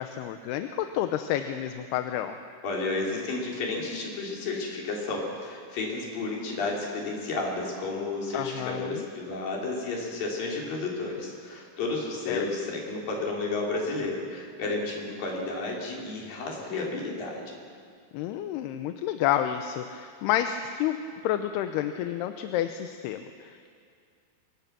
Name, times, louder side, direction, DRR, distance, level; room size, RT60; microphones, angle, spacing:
voice 1, 0.0-2.4 8.3-9.0 12.3-12.5 18.1-23.7, left 11 dB, 85° left, 8 dB, 2.8 m, -30 dB
voice 2, 2.6-17.6, left 3 dB, 60° left, -2 dB, 5.2 m, -32 dB
25.5 x 22.5 x 6.1 m, 2.2 s
omnidirectional pair, 4.6 m